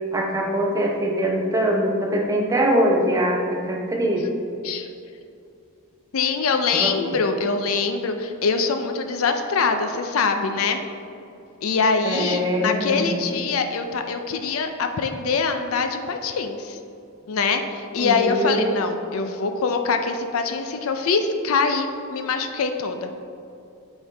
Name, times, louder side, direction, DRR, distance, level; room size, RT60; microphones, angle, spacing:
voice 1, 0.1-4.3 6.7-6.9 12.0-13.2 18.0-18.7, equal, 15° right, 0 dB, 0.7 m, -22 dB
voice 2, 6.1-10.8 11.6-16.8 17.3-23.1, left 4 dB, 65° left, 7 dB, 0.5 m, -24 dB
8.4 x 4.5 x 3.3 m, 2.6 s
head